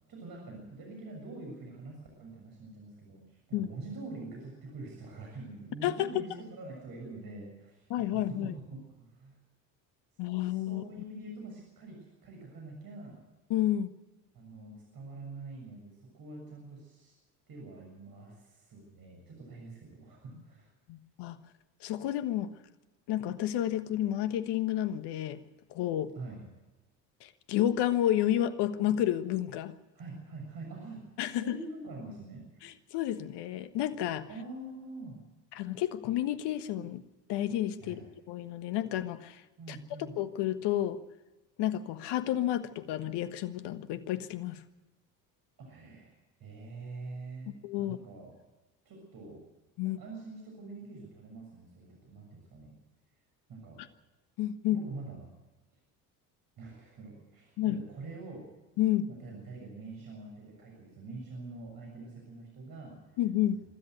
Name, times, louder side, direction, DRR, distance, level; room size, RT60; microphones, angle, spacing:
voice 1, 0.1-9.4 10.4-13.2 14.3-17.1 17.5-20.7 26.1-26.4 29.9-32.8 34.3-35.2 37.8-38.1 39.6-40.2 45.6-48.4 48.9-49.4 49.8-52.7 53.5-53.8 54.7-55.3 56.6-58.5 59.1-63.2, right 3 dB, 50° right, 0 dB, 7.1 m, -45 dB
voice 2, 7.9-8.5 10.2-10.8 13.5-13.9 20.9-21.4 21.8-22.5 23.1-25.4 25.7-26.1 27.2-29.7 31.2-31.6 32.6-34.3 35.5-37.0 37.3-38.0 38.3-39.4 39.7-39.8 40.2-41.0 41.6-44.6 47.6-48.0 49.8-50.0 54.4-54.8 57.6-57.8 58.8-59.1 63.2-63.6, left 12 dB, 60° left, 12 dB, 1.4 m, -30 dB
24.5 x 13.5 x 7.9 m, 1.1 s
hypercardioid pair, 70°, 47 cm